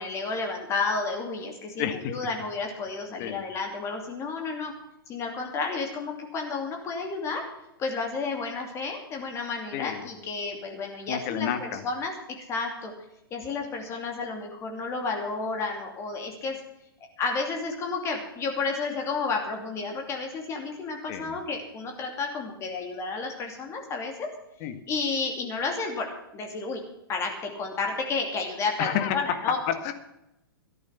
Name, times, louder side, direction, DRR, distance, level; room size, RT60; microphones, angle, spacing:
voice 1, 0.0-4.7 5.1-7.5 7.8-12.1 12.5-12.9 13.3-16.6 17.2-24.3 24.9-26.8 27.1-29.6, left 4 dB, 25° left, 3 dB, 2.7 m, -31 dB
voice 2, 1.8-2.2 3.2-3.4 9.7-10.1 11.1-11.8 21.1-21.4 24.6-24.7 28.8-29.9, left 10 dB, 40° left, 9 dB, 1.8 m, -30 dB
14.0 x 11.0 x 5.9 m, 0.88 s
figure-of-eight pair, 110°, 12 cm